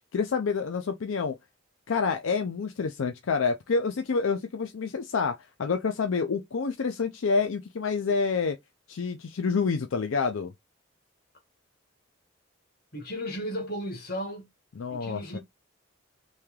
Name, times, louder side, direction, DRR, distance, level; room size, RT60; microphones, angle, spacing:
voice 1, 0.1-1.4 1.9-8.6 8.9-10.5 14.8-15.4, left 5 dB, 75° left, 0.5 m, -28 dB
voice 2, 12.9-14.5 14.9-15.4, equal, 45° left, 1.6 m, -35 dB
3.2 x 2.8 x 3.6 m
head